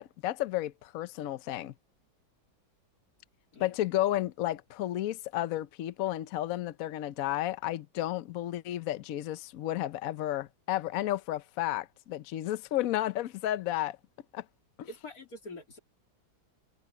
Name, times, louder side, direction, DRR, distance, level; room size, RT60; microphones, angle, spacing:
voice 1, 0.0-1.7 3.6-14.0 14.3-14.4 14.8-14.9, left 14 dB, 70° left, 0.8 m, -32 dB
voice 2, 14.8-15.8, left 2 dB, 45° left, 3.7 m, -45 dB
omnidirectional pair, 2.1 m